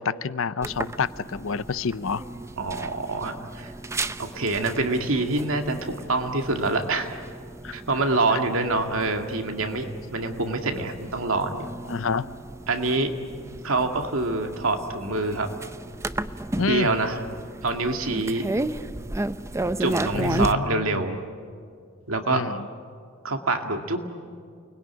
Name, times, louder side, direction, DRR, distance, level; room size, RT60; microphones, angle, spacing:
voice 1, 0.0-2.2 7.6-7.8 11.9-12.3 16.6-17.0 20.1-21.0 22.3-22.6, left 5 dB, 70° left, 15 dB, 0.7 m, -28 dB
sound 1, 0.6-20.5, right 2 dB, 15° right, 0.6 m, -34 dB
voice 2, 2.6-3.7 4.2-7.2 7.7-11.7 12.7-13.1 13.6-15.5 16.7-17.2 17.6-18.5 19.8-21.2 22.1-22.4 23.2-24.1, right 2 dB, 75° right, 4 dB, 2.3 m, -26 dB
29.5 x 21.0 x 9.7 m, 2.2 s
head